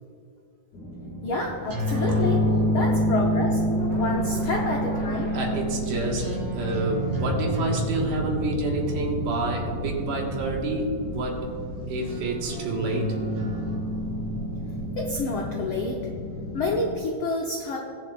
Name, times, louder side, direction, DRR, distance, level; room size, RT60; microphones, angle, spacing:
sound 1, 0.7-17.0, equal, 65° left, 3.1 m, -40 dB
voice 1, 1.2-3.6 3.9-5.3 15.0-16.0 16.5-17.8, left 2 dB, 80° left, -1 dB, 1.2 m, -29 dB
sound 2, 1.6-16.7, equal, 60° right, 3.9 m, -28 dB
sound 3, 2.0-7.1, left 1 dB, 30° right, 3.3 m, -36 dB
voice 2, 5.3-11.5 11.9-13.2, right 2 dB, 75° right, 0 dB, 3.1 m, -28 dB
21.0 x 7.3 x 2.4 m, 2.5 s
omnidirectional pair, 3.7 m